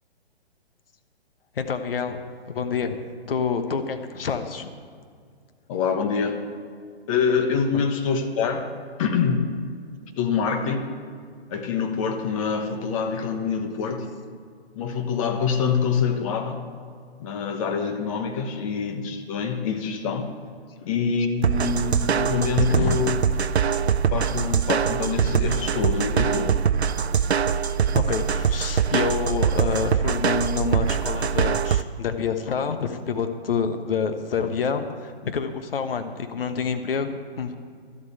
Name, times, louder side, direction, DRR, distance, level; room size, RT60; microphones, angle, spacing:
voice 1, 1.6-2.2 2.5-3.0 3.3-4.7 7.7-7.8 22.7-23.0 27.9-37.6, left 6 dB, 60° left, 8 dB, 1.2 m, -27 dB
voice 2, 5.7-6.4 7.1-8.7 9.0-9.5 10.2-11.0 11.5-14.1 14.7-16.6 17.2-20.3 20.8-23.2 24.1-26.6, left 6 dB, 30° left, 6 dB, 1.2 m, -25 dB
sound 1, 21.4-31.8, right 7 dB, 85° right, 0.6 m, -23 dB
12.5 x 7.9 x 8.1 m, 2.1 s
figure-of-eight pair, 135°, 32 cm